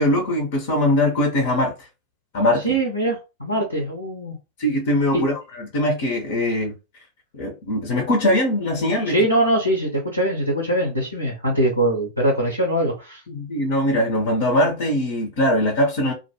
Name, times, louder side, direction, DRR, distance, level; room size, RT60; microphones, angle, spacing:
voice 1, 0.0-1.7 2.3-2.6 4.6-6.8 7.3-9.1 13.3-16.1, left 1 dB, 55° left, 0.7 m, -21 dB
voice 2, 2.6-4.4 5.1-5.2 9.0-13.2, right 1 dB, 90° left, 0.8 m, -22 dB
2.5 x 2.2 x 2.8 m
figure-of-eight pair, 90°, 0 cm